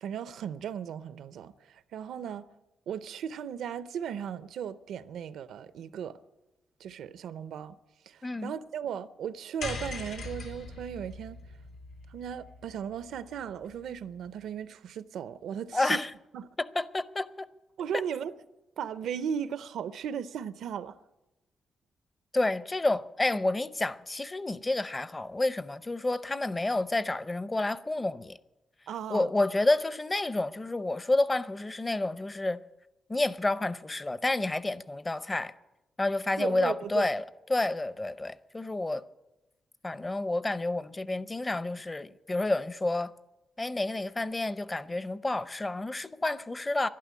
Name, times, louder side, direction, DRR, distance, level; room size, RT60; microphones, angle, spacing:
voice 1, 0.0-2.5 2.9-6.2 6.8-7.8 8.1-11.4 12.1-16.0 16.3-16.5 17.8-18.3 18.8-21.0 28.9-29.3 36.4-37.1, right 8 dB, 90° right, 0.6 m, -36 dB
voice 2, 8.2-8.5 15.7-16.1 16.6-17.5 22.3-28.4 29.1-32.6 33.1-35.5 36.0-37.2 37.5-39.0 39.8-43.1 43.6-46.9, left 2 dB, 20° left, 0.6 m, -29 dB
sound 1, 9.6-14.0, left 3 dB, 90° left, 3.0 m, -41 dB
11.5 x 11.5 x 9.4 m
cardioid pair, 105°, 0 cm